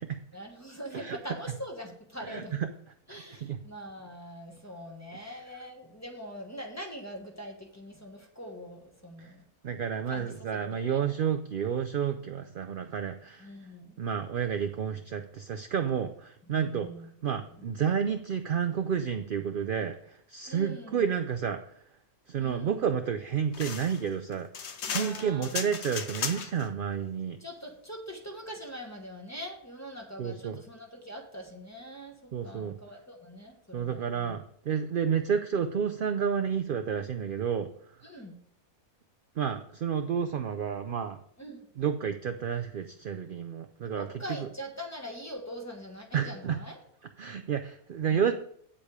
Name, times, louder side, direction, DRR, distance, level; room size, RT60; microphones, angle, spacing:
voice 1, 0.3-2.6 3.1-9.4 10.1-11.0 13.4-13.9 16.5-17.1 17.4-17.7 20.5-21.1 22.4-22.8 24.8-25.7 27.4-34.4 38.0-38.4 41.4-41.7 43.9-46.8 48.1-48.3, equal, 10° left, 2 dB, 1.3 m, -43 dB
voice 2, 9.6-13.5 14.0-16.9 17.2-21.6 22.3-24.5 24.9-27.4 30.2-30.6 32.3-32.7 33.7-37.7 39.4-41.2 41.8-44.1 44.4-44.5 46.1-46.6 47.2-48.3, right 7 dB, 65° right, 7 dB, 0.5 m, -30 dB
sound 1, 23.5-26.7, left 6 dB, 55° left, 1.0 m, -36 dB
8.5 x 7.8 x 4.8 m, 0.65 s
omnidirectional pair, 1.5 m